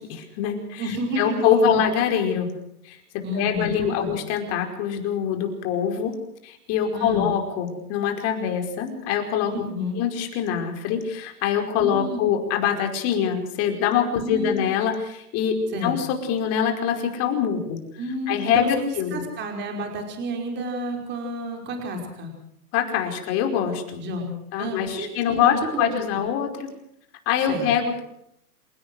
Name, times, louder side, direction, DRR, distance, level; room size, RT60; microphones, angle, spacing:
voice 1, 0.0-2.5 2.8-6.2 6.4-9.5 9.9-17.8 18.3-19.2 22.7-24.0 24.5-26.7 27.2-28.0, left 8 dB, 30° left, 4 dB, 5.1 m, -24 dB
voice 2, 0.8-1.8 3.2-4.1 6.9-7.3 9.5-10.0 11.8-12.2 14.1-14.7 15.7-16.0 18.0-22.3 24.0-26.0 27.5-27.7, equal, 25° right, 3 dB, 5.4 m, -30 dB
28.0 x 17.0 x 6.4 m, 0.75 s
hypercardioid pair, 145°, 46 cm